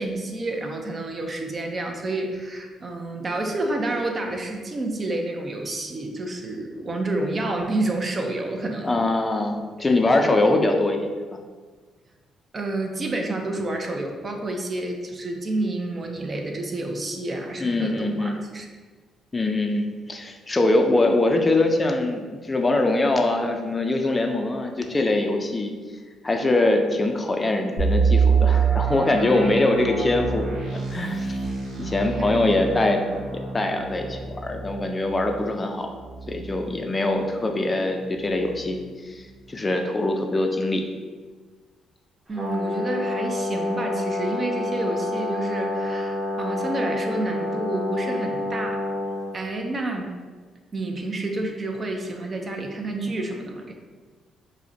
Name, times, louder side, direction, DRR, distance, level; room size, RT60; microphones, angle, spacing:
voice 1, 0.0-9.0 12.5-18.7 32.2-32.6 42.3-48.8 49.3-50.1 50.7-53.7, right 2 dB, 35° right, 3 dB, 0.5 m, -29 dB
voice 2, 8.8-11.0 17.6-18.4 19.3-25.7 26.2-30.5 30.7-31.5 31.8-33.0 33.3-35.9 36.3-40.8, left 2 dB, 25° left, 3 dB, 0.4 m, -23 dB
sound 1, 27.8-37.5 37.8-37.9 38.4-38.7, right 5 dB, 90° right, 0.9 m, -26 dB
Brass instrument, 42.3-49.3, left 1 dB, 20° right, 1.0 m, -28 dB
4.9 x 2.1 x 2.7 m, 1.4 s
cardioid pair, 90°, 0 cm